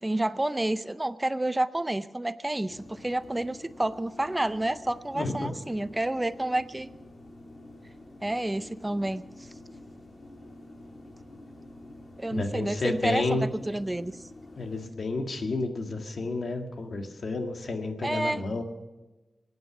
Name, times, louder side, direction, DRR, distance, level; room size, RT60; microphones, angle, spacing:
voice 1, 0.0-6.9 8.2-9.2 12.2-14.1 18.0-18.4, right 1 dB, 15° right, 13 dB, 0.5 m, -29 dB
sound 1, 2.7-14.9, left 1 dB, 50° left, 2.4 m, -48 dB
voice 2, 5.1-5.5 12.3-13.5 14.6-18.6, left 3 dB, 70° left, 4 dB, 1.9 m, -31 dB
23.5 x 9.4 x 6.1 m, 1.1 s
wide cardioid pair, 125°, 0 cm